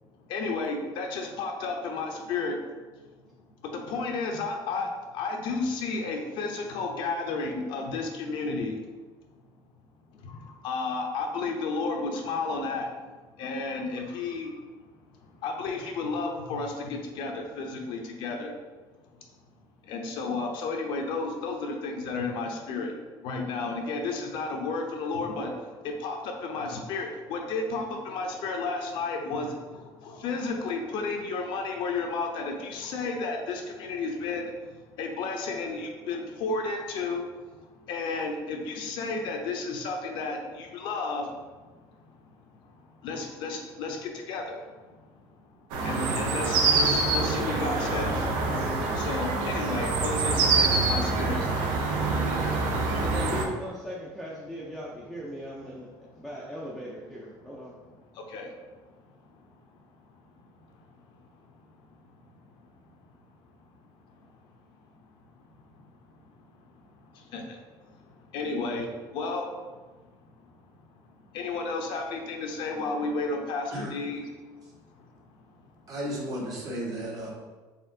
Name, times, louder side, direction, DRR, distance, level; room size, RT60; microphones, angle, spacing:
voice 1, 0.2-3.3 3.6-8.8 10.1-14.6 15.1-18.5 19.8-22.9 23.2-53.0 56.0-56.2 57.7-60.2 61.9-62.4 63.0-63.2 63.6-64.3 64.7-64.9 65.5-70.6 70.9-71.0 71.3-75.7, left 3 dB, 70° left, 0.7 m, -33 dB
sound 1, 45.7-53.5, right 3 dB, 85° right, 0.6 m, -26 dB
voice 2, 53.0-57.7, equal, ahead, 0.5 m, -38 dB
voice 3, 75.9-77.3, equal, 45° right, 1.3 m, -34 dB
4.2 x 3.5 x 2.7 m
cardioid pair, 125°, 9 cm